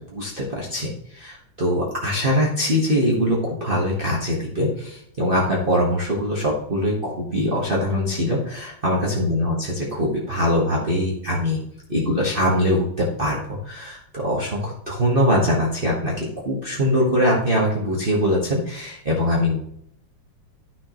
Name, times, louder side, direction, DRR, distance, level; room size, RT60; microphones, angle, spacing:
voice 1, 0.1-11.6 11.9-19.6, equal, 30° right, -5 dB, 1.5 m, -22 dB
12.0 x 6.1 x 3.0 m, 0.74 s
omnidirectional pair, 2.3 m